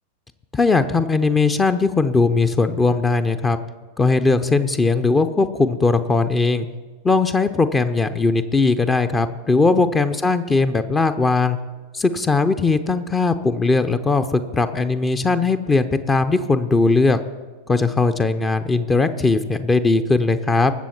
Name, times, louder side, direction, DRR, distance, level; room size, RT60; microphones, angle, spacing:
voice 1, 0.5-3.6 4.0-6.7 7.0-11.6 11.9-17.2 17.7-20.7, left 3 dB, 15° left, 10 dB, 0.6 m, -19 dB
20.5 x 7.6 x 4.4 m, 1.4 s
figure-of-eight pair, 90°, 0 cm